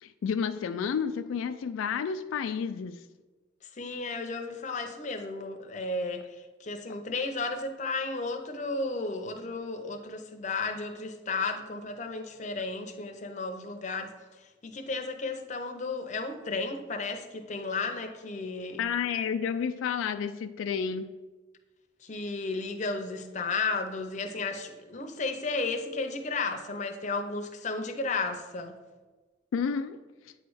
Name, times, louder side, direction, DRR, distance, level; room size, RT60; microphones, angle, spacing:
voice 1, 0.0-3.0 18.8-21.1 29.5-30.0, left 6 dB, 90° left, 9 dB, 0.3 m, -30 dB
voice 2, 3.7-14.1 14.6-18.8 22.0-28.8, left 3 dB, 40° left, 6 dB, 0.6 m, -33 dB
8.5 x 3.1 x 4.7 m, 1.2 s
head